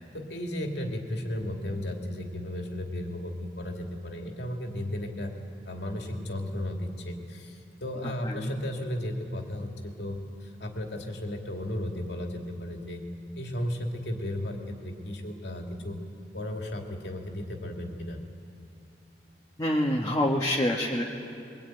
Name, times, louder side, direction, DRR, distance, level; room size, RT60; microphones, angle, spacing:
voice 1, 0.0-5.4 5.7-13.0 13.4-16.0 16.3-18.2, left 1 dB, 70° left, 2 dB, 2.7 m, -34 dB
voice 2, 8.0-8.5 19.6-21.0, left 1 dB, 20° left, -2 dB, 1.6 m, -27 dB
23.0 x 21.5 x 9.1 m, 2.6 s
head